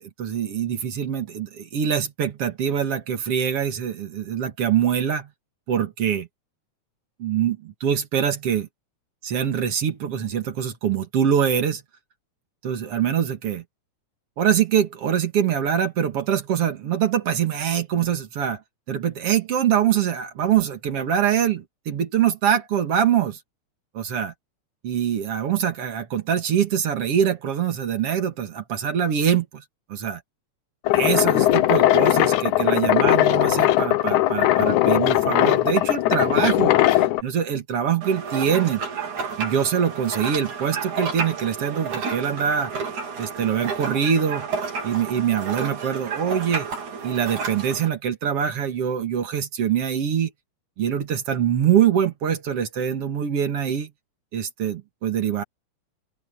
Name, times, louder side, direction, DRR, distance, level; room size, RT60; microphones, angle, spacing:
voice 1, 0.2-5.3 5.7-6.3 7.2-8.7 9.2-11.8 12.6-13.6 14.4-18.6 18.9-23.4 23.9-24.3 24.8-29.6 29.9-30.2 30.9-38.8 39.4-42.7 43.2-44.5 44.8-46.7 47.0-50.3 50.8-53.9 54.3-55.4, right 8 dB, 55° right, 2.7 m, -24 dB
sound 1, 30.9-37.2, left 14 dB, 80° left, 2.3 m, -19 dB
sound 2, 38.0-47.9, right 5 dB, 90° right, 5.4 m, -31 dB
open air
omnidirectional pair, 3.4 m